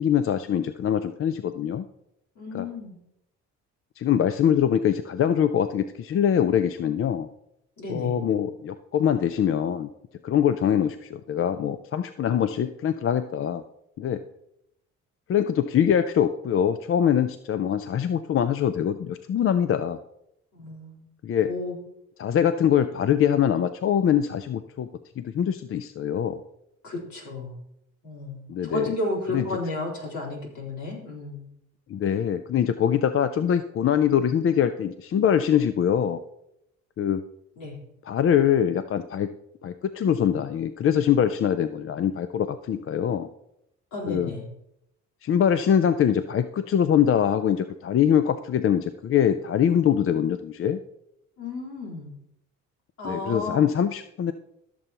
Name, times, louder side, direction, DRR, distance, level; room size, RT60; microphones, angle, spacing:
voice 1, 0.0-1.8 2.5-2.6 4.0-7.3 7.9-9.9 10.2-13.6 14.0-14.2 15.3-20.0 21.2-21.5 22.2-24.9 25.2-26.4 28.5-28.9 29.3-29.4 31.9-36.2 37.0-37.2 38.1-39.3 39.6-43.3 44.1-44.3 45.2-50.8 53.0-54.3, left 9 dB, 45° left, 11 dB, 0.5 m, -23 dB
voice 2, 2.4-3.0 7.8-8.2 20.5-21.1 21.5-21.8 26.8-27.6 28.0-31.5 37.6-37.8 43.9-44.4 51.4-52.1 53.0-53.7, left 2 dB, 70° left, -3 dB, 3.9 m, -33 dB
14.5 x 6.9 x 2.9 m, 0.81 s
cardioid pair, 90°, 30 cm